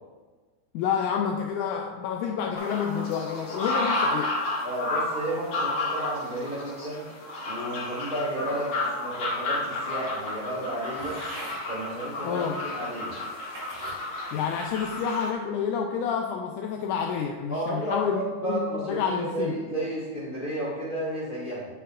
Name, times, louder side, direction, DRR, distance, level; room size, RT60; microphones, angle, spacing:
voice 1, 0.7-4.3 12.2-12.7 14.3-19.6, left 7 dB, 85° left, 3 dB, 1.7 m, -29 dB
sound 1, 2.5-15.3, left 2 dB, 55° left, 1.3 m, -32 dB
voice 2, 4.6-7.1 7.4-11.2 11.7-13.2 17.5-21.7, right 1 dB, 30° left, -7 dB, 0.9 m, -32 dB
sound 2, 11.0-11.6 12.4-12.5 13.2-14.0 14.6-15.0, right 1 dB, 90° right, 4.1 m, -42 dB
8.8 x 8.2 x 2.5 m, 1.4 s
omnidirectional pair, 4.0 m